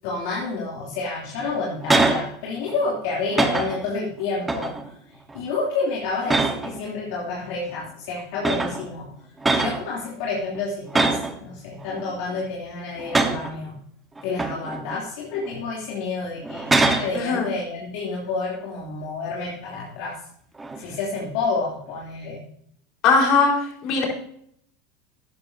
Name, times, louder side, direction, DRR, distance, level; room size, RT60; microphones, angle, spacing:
voice 1, 0.0-9.1 9.5-13.8 14.2-20.2 20.8-22.4, left 3 dB, 65° left, -4 dB, 3.1 m, -29 dB
sound 1, 1.4-2.3 2.7-3.0 3.3-3.9 4.4-4.9 5.3-5.6 6.2-6.8 7.8-7.9 8.4-8.9 9.4-9.8 10.9-11.4 11.8-12.4 13.0-13.5 14.2-15.0 15.4-15.6 16.4-17.1 20.6-20.9, right 3 dB, 15° right, 1.3 m, -23 dB
voice 2, 17.1-17.5 23.0-24.1, left 4 dB, 50° left, -1 dB, 4.6 m, -20 dB
13.0 x 10.5 x 2.8 m, 0.68 s
supercardioid pair, 115°, 0 cm